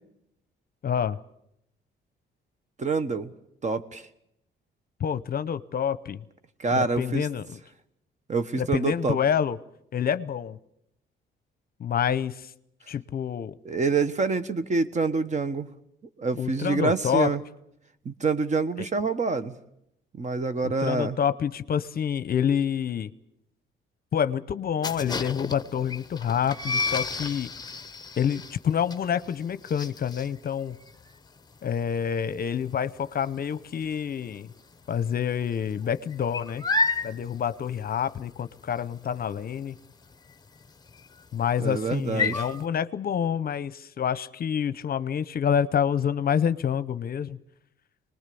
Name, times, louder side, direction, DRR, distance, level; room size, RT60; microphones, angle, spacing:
voice 1, 0.8-1.2 5.0-6.2 6.7-7.6 8.6-9.6 9.9-10.6 11.8-12.5 12.9-13.6 16.4-17.3 20.6-23.1 24.1-27.5 28.2-30.8 31.6-34.5 34.9-36.6 37.0-39.8 41.3-47.4, left 8 dB, 50° left, 15 dB, 0.8 m, -27 dB
voice 2, 2.8-3.3 3.6-4.0 6.6-7.3 8.3-9.2 13.6-15.7 16.2-17.4 18.0-19.5 20.1-21.2 41.6-42.4, right 4 dB, 35° right, 12 dB, 1.3 m, -26 dB
sound 1, 24.8-34.3 34.6-35.0 35.2-42.7, left 3 dB, 20° left, 0.9 m, -32 dB
24.5 x 20.0 x 6.9 m, 0.78 s
cardioid pair, 90°, 20 cm